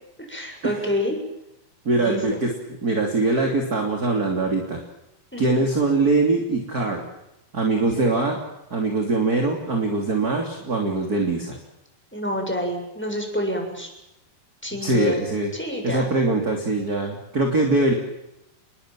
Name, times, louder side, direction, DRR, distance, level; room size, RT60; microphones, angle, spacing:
voice 1, 0.3-1.2 1.9-2.4 5.3-5.6 7.8-8.1 12.1-13.9 14.6-15.2 15.5-16.1, equal, 5° left, 3 dB, 7.0 m, -28 dB
voice 2, 1.8-2.5 2.8-4.8 5.4-7.1 7.5-8.4 8.7-11.6 14.8-15.5 15.8-17.9, right 3 dB, 25° right, 2 dB, 3.2 m, -22 dB
29.0 x 22.0 x 7.6 m, 0.89 s
omnidirectional pair, 4.4 m